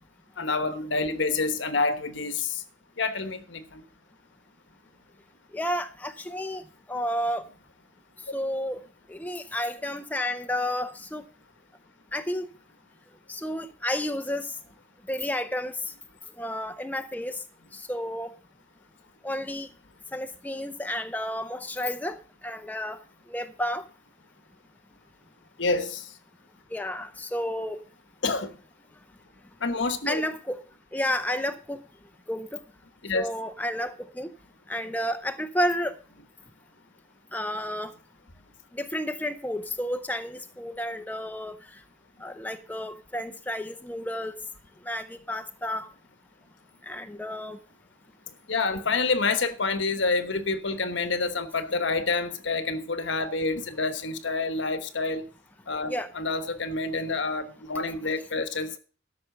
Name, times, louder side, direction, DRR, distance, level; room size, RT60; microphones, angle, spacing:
voice 1, 0.4-2.6 3.0-3.8 25.6-26.1 28.2-28.6 29.6-30.2 33.0-33.3 48.5-55.3 55.7-58.8, left 3 dB, 65° left, 1.2 m, -28 dB
voice 2, 5.5-7.5 8.3-8.8 9.1-11.3 12.1-12.5 13.3-14.6 15.1-15.9 16.4-17.4 17.7-18.3 19.2-19.7 20.1-23.0 23.3-23.8 26.7-27.8 30.1-30.6 30.9-31.8 32.3-32.6 33.1-34.3 34.7-36.0 37.3-37.9 38.7-41.8 42.2-44.4 44.8-45.9 46.8-47.6 55.8-56.1, left 1 dB, 10° left, 0.6 m, -31 dB
13.0 x 5.8 x 6.7 m
head